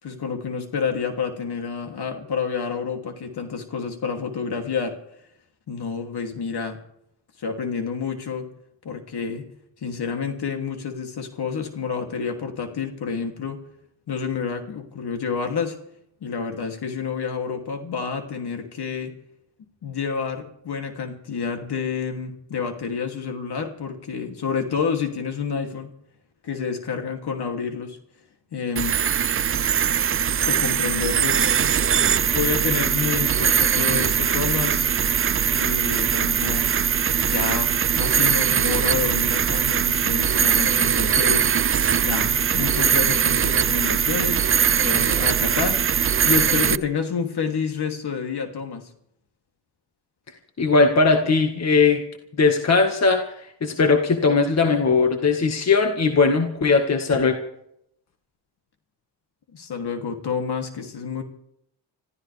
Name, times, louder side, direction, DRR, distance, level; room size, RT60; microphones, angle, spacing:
voice 1, 0.0-4.9 5.7-6.8 7.4-8.5 8.8-9.5 9.8-13.6 14.1-15.8 16.2-19.1 19.8-25.9 26.4-28.0 28.5-29.0 30.5-31.7 32.3-34.9 35.5-36.7 37.2-41.5 42.0-48.9 59.5-61.2, left 6 dB, 60° left, 4 dB, 3.0 m, -29 dB
sound 1, 28.8-46.8, right 8 dB, 30° right, 0.5 m, -21 dB
voice 2, 50.6-52.0 52.4-57.4, left 4 dB, 35° left, 4 dB, 1.9 m, -19 dB
26.0 x 14.5 x 3.5 m, 0.75 s
cardioid pair, 95°, 44 cm